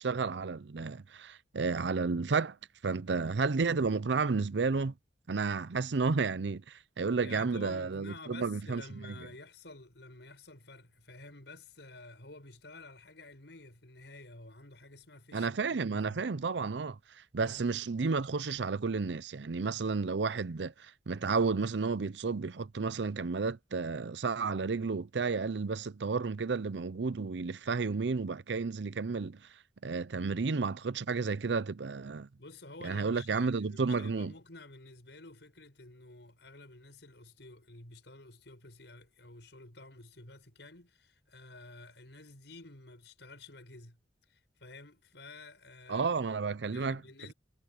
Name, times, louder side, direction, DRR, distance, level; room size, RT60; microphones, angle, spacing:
voice 1, 0.0-2.6 2.8-4.9 5.3-9.1 15.3-17.0 17.3-29.4 29.8-32.3 32.8-34.3 45.9-47.0, right 4 dB, 75° right, 0.6 m, -32 dB
voice 2, 7.2-16.3 17.4-17.7 32.4-44.0 44.3-46.3 46.7-47.3, left 2 dB, 75° left, 6.5 m, -51 dB
head